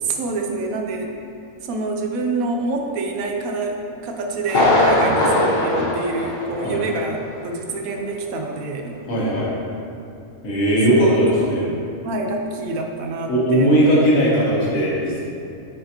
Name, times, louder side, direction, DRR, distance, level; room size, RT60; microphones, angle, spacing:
voice 1, 0.0-1.1 1.6-7.2 7.4-8.9 11.0-13.8, right 3 dB, 80° right, 2 dB, 1.1 m, -27 dB
Thunder, 4.4-7.0 7.3-7.4 7.9-8.0, left 1 dB, 45° left, 1.1 m, -20 dB
voice 2, 9.1-9.5 10.4-11.7 13.3-15.2, right 1 dB, 70° left, -6 dB, 1.7 m, -18 dB
9.8 x 4.4 x 2.9 m, 2.6 s
omnidirectional pair, 1.5 m